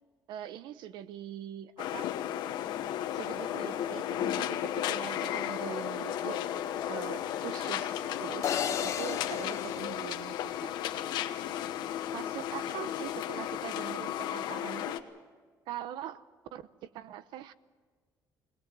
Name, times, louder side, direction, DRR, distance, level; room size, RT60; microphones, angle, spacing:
voice 1, 0.3-2.1 3.1-6.4 6.9-10.7 12.1-15.0 15.7-17.5, right 11 dB, 85° right, 14 dB, 0.9 m, -42 dB
sound 1, 1.8-15.0, left 11 dB, 75° left, 1.1 m, -34 dB
sound 2, 3.2-9.5, left 3 dB, 15° left, 0.7 m, -46 dB
sound 3, 8.4-10.8, left 9 dB, 45° left, 0.9 m, -35 dB
22.5 x 19.0 x 7.7 m, 1.4 s
cardioid pair, 175°, 8 cm